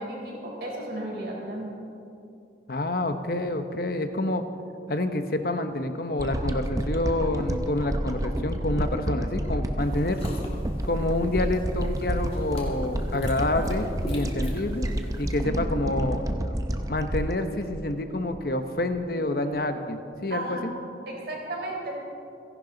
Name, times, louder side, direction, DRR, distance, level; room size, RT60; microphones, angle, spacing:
voice 1, 0.0-1.7 15.4-15.7 20.3-20.6 21.1-21.9, right 1 dB, 60° right, -1 dB, 4.1 m, -34 dB
voice 2, 2.7-4.4 4.9-10.2 10.8-14.9 15.2-16.2 16.9-20.7, left 1 dB, 55° left, 8 dB, 1.0 m, -28 dB
sound 1, 6.2-18.5 19.0-19.1, equal, 20° right, 0.7 m, -30 dB
sound 2, 9.8-15.4, left 1 dB, 35° left, 2.3 m, -44 dB
29.0 x 11.0 x 4.0 m, 2.6 s
head